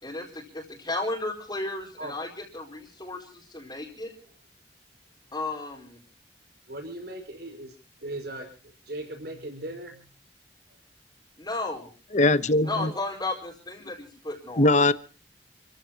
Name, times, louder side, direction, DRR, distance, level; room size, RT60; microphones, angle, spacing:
voice 1, 0.0-4.1 5.3-6.0 11.4-11.9 12.6-14.7, left 2 dB, 25° left, -2 dB, 4.7 m, -34 dB
voice 2, 6.7-7.7 8.0-8.5 8.9-10.0 12.6-12.9, right 1 dB, 65° right, 4 dB, 5.3 m, -38 dB
voice 3, 12.1-12.9 14.6-14.9, left 2 dB, 45° left, 14 dB, 1.0 m, -20 dB
30.0 x 15.0 x 2.9 m, 0.35 s
head